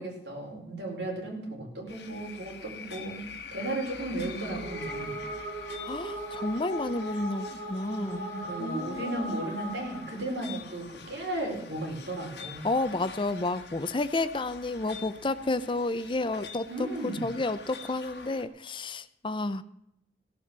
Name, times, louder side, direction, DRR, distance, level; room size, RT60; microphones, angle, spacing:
voice 1, 0.0-3.2 3.5-5.2 8.0-12.6 16.7-17.3, right 1 dB, 75° right, 0 dB, 5.0 m, -35 dB
sound 1, 1.9-18.4, left 5 dB, 75° left, 1.5 m, -46 dB
sound 2, 4.5-10.2, equal, 60° right, 5.4 m, -38 dB
voice 2, 5.8-8.3 8.6-9.3 12.6-19.6, left 2 dB, 30° left, 13 dB, 0.6 m, -31 dB
16.0 x 7.7 x 7.3 m, 0.79 s
head